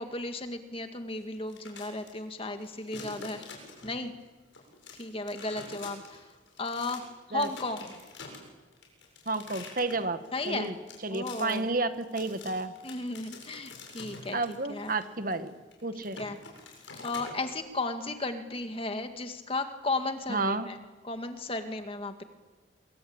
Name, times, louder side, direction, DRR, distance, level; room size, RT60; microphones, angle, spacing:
voice 1, 0.0-3.5 3.8-4.1 5.0-6.2 6.6-7.8 10.3-10.7 11.1-11.7 12.8-14.9 16.2-16.4 17.0-20.8 21.0-22.2, left 2 dB, 30° left, 7 dB, 2.0 m, -34 dB
sound 1, 1.3-2.1 2.5-4.1 4.5-7.0 7.4-17.5, left 4 dB, 70° left, 7.8 m, -46 dB
voice 2, 9.3-10.2 10.5-10.7 11.0-12.7 14.3-15.5 15.8-16.2 20.3-20.7, right 3 dB, 45° right, 9 dB, 1.6 m, -31 dB
26.5 x 24.0 x 8.8 m, 1.3 s
head